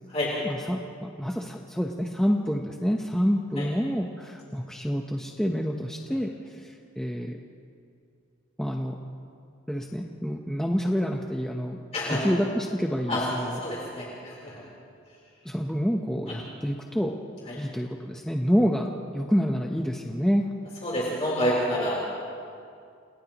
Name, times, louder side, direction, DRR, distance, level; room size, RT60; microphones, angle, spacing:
voice 1, 0.4-0.8 1.2-6.3 6.6-7.4 8.6-9.0 9.7-11.8 12.1-13.6 15.4-17.1 17.6-20.5, equal, 5° left, 0 dB, 0.9 m, -27 dB
voice 2, 11.9-12.3 13.1-13.2 13.6-14.6 17.5-17.6 20.8-22.0, equal, 35° left, -6 dB, 3.8 m, -28 dB
30.0 x 29.5 x 3.0 m, 2.4 s
head